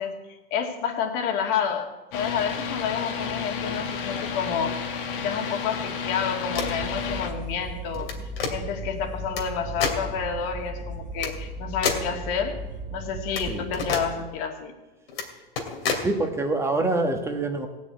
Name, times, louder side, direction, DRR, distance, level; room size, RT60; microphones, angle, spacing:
voice 1, 0.0-4.8 5.2-8.2 8.5-12.6 12.9-14.7, left 7 dB, 45° left, 3 dB, 2.4 m, -29 dB
sound 1, 2.1-7.3, left 6 dB, 65° left, 2.0 m, -31 dB
sound 2, 6.4-6.8 7.9-8.5 9.4-9.5 9.8-10.0 11.2-11.3 11.8-12.1 13.4-13.5 13.7-14.1 15.1-15.3 15.6-16.1, left 5 dB, 80° left, 2.7 m, -28 dB
sound 3, 6.6-14.3, right 2 dB, 25° right, 1.1 m, -37 dB
voice 2, 15.9-17.7, right 2 dB, 10° right, 4 dB, 1.4 m, -25 dB
17.0 x 6.4 x 8.2 m, 1.1 s
hypercardioid pair, 125°, 29 cm